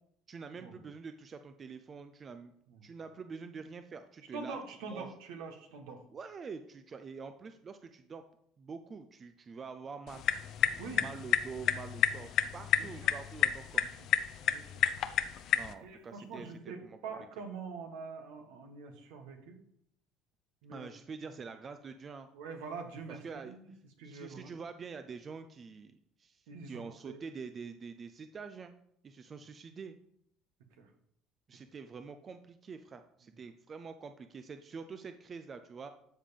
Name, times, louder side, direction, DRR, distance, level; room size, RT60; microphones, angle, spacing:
voice 1, 0.3-2.5 2.8-4.6 4.9-5.1 6.1-8.2 8.6-10.2 11.0-13.8 15.5-17.0 20.7-22.3 23.2-23.6 24.0-28.7 29.0-30.0 31.5-35.9, right 5 dB, 35° right, 9 dB, 0.7 m, -46 dB
voice 2, 4.3-6.0 10.8-11.0 12.8-13.1 13.7-14.1 14.4-14.9 15.8-19.6 20.6-20.9 22.3-23.7 24.0-24.5 26.5-27.2 30.8-30.9, right 4 dB, 80° right, 4 dB, 1.8 m, -45 dB
sound 1, 10.1-15.7, left 10 dB, 60° left, 0.7 m, -31 dB
13.0 x 5.0 x 5.3 m, 0.70 s
hypercardioid pair, 75°, 0 cm